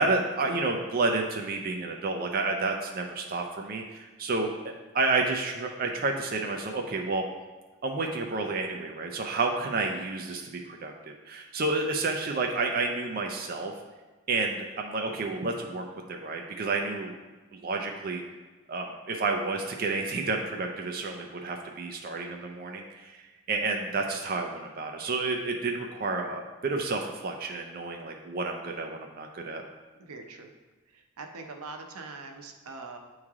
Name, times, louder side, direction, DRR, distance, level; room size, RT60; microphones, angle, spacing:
voice 1, 0.0-4.5 4.9-7.2 7.8-13.7 14.3-17.1 17.6-18.2 18.7-29.6, right 3 dB, 40° right, 2 dB, 0.4 m, -30 dB
voice 2, 30.0-30.5 30.9-33.0, right 3 dB, 90° right, 4 dB, 0.7 m, -43 dB
8.4 x 3.2 x 3.6 m, 1.2 s
head